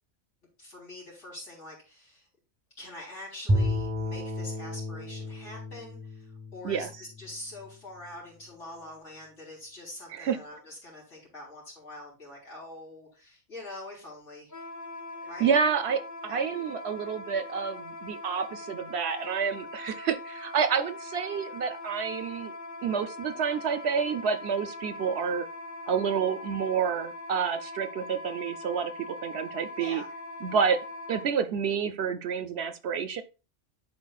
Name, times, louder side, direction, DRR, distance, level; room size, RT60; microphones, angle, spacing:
voice 1, 0.6-2.3 2.8-14.5 15.2-15.5 16.3-16.4 29.8-30.1, left 1 dB, 85° left, -4 dB, 4.1 m, -44 dB
Bowed string instrument, 3.5-7.7, left 1 dB, 10° right, 0.9 m, -32 dB
Wind instrument woodwind instrument, 14.5-31.3, left 2 dB, 15° left, 0.9 m, -41 dB
voice 2, 15.4-22.5 22.8-25.5 25.9-30.0 30.4-30.8 31.1-33.2, right 6 dB, 65° right, 10 dB, 0.8 m, -29 dB
11.5 x 4.4 x 2.4 m, 0.32 s
omnidirectional pair, 1.2 m